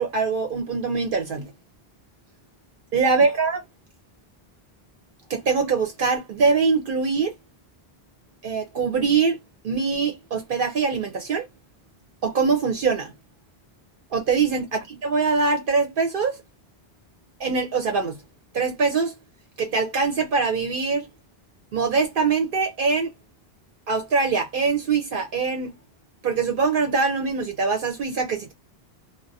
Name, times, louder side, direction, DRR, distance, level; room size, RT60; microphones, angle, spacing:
voice 1, 0.0-1.4 2.9-3.6 5.3-7.3 8.4-9.4 9.6-11.5 12.2-13.1 14.1-16.4 17.4-18.2 18.5-19.1 19.6-21.1 21.7-23.1 23.9-25.7 26.2-28.5, right 4 dB, 60° right, 0.7 m, -23 dB
2.3 x 2.1 x 2.6 m
omnidirectional pair, 1.0 m